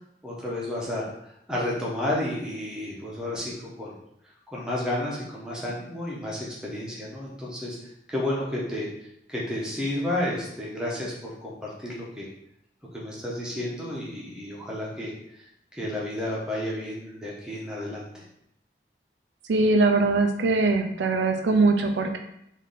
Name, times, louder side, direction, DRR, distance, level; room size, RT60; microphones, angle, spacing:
voice 1, 0.2-3.9 4.5-7.8 8.1-8.9 9.3-12.3 12.9-15.4 15.7-18.2, left 1 dB, 5° right, -5 dB, 0.9 m, -31 dB
voice 2, 19.5-22.2, right 3 dB, 85° right, 4 dB, 0.5 m, -21 dB
3.6 x 2.7 x 4.0 m, 0.76 s
head